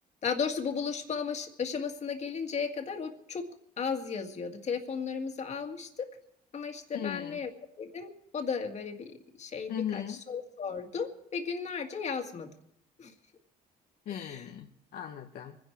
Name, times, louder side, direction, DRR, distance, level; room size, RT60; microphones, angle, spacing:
voice 1, 0.2-3.5 3.8-6.1 6.5-7.5 7.8-12.5 13.0-13.1 14.1-14.5, left 6 dB, 40° left, 5 dB, 2.0 m, -35 dB
voice 2, 6.9-7.4 9.7-10.2 14.1-15.6, left 9 dB, 65° left, 4 dB, 1.0 m, -37 dB
24.5 x 10.5 x 4.6 m, 0.73 s
cardioid pair, 110°, 17 cm